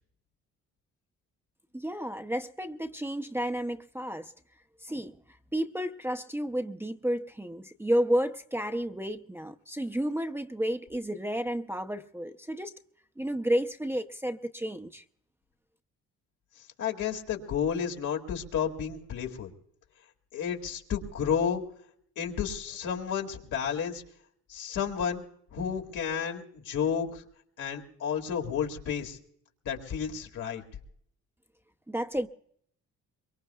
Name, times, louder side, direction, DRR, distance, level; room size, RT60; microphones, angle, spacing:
voice 1, 1.7-4.3 4.8-5.2 5.5-12.7 13.2-15.0 31.9-32.3, equal, 10° right, 0.7 m, -31 dB
voice 2, 16.8-19.5 20.3-21.6 22.2-24.0 24.5-25.2 25.5-27.2 27.6-29.2 29.7-30.6, left 7 dB, 80° left, 2.4 m, -31 dB
23.5 x 23.0 x 2.3 m
cardioid pair, 90°, 30 cm